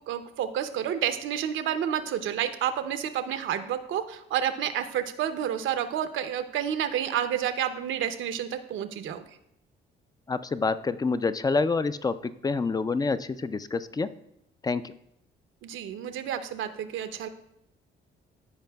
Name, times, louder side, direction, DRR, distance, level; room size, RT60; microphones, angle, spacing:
voice 1, 0.1-9.2 15.6-17.3, right 9 dB, 80° right, 9 dB, 0.7 m, -30 dB
voice 2, 10.3-14.1 14.6-14.8, left 4 dB, 20° left, 13 dB, 0.3 m, -27 dB
14.0 x 4.9 x 2.3 m, 0.78 s
cardioid pair, 90°, 20 cm